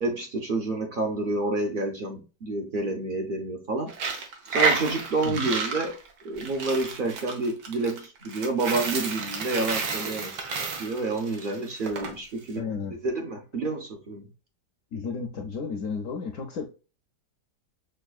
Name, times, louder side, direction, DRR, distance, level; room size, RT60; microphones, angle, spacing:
voice 1, 0.0-3.9 4.5-6.0 6.2-10.4 10.8-12.6 12.9-14.3, right 2 dB, 60° right, 0.5 m, -29 dB
Coin (dropping), 3.9-12.1, right 4 dB, 85° right, 1.5 m, -30 dB
voice 2, 12.6-12.9 14.9-16.6, left 5 dB, 65° left, 0.8 m, -33 dB
6.3 x 2.3 x 2.3 m
omnidirectional pair, 1.8 m